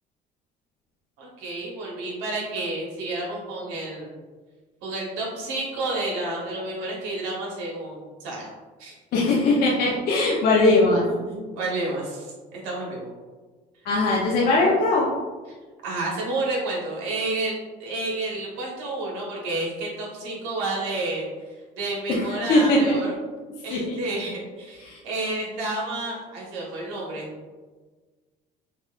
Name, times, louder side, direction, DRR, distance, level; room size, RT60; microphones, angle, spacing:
voice 1, 1.2-4.2 4.8-8.5 8.8-8.9 11.2-13.1 15.8-23.1 23.6-27.3, right 2 dB, 85° right, -3 dB, 1.3 m, -30 dB
voice 2, 9.1-11.0 13.8-15.1 22.1-23.0 23.7-24.0 24.8-25.0, left 2 dB, 60° left, -4 dB, 0.8 m, -20 dB
5.5 x 2.6 x 2.4 m, 1.4 s
supercardioid pair, 90°, 17 cm